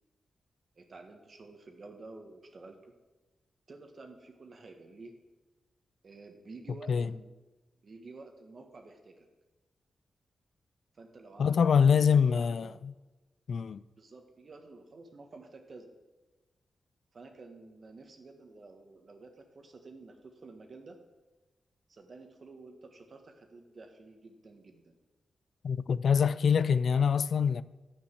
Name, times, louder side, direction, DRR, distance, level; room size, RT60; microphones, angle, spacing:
voice 1, 0.7-2.9 3.7-5.1 6.0-7.3 7.8-9.3 10.9-12.8 14.0-15.9 17.1-21.0 21.9-25.0, right 3 dB, 55° right, 1.5 m, -51 dB
voice 2, 11.4-12.9 13.5-13.8 25.6-27.6, left 6 dB, 70° left, 0.3 m, -25 dB
10.0 x 5.3 x 7.9 m
cardioid pair, 60°, 0 cm